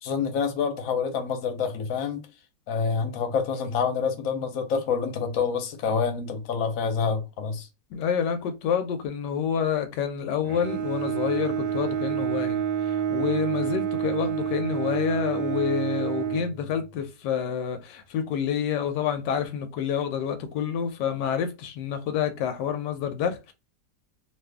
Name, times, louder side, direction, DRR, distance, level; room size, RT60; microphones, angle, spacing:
voice 1, 0.0-2.3 2.7-7.7, left 6 dB, 60° left, 1.0 m, -27 dB
voice 2, 7.9-23.5, left 8 dB, 80° left, 1.2 m, -28 dB
Bowed string instrument, 10.4-17.1, right 9 dB, 75° right, 1.2 m, -28 dB
2.8 x 2.4 x 3.3 m
omnidirectional pair, 1.9 m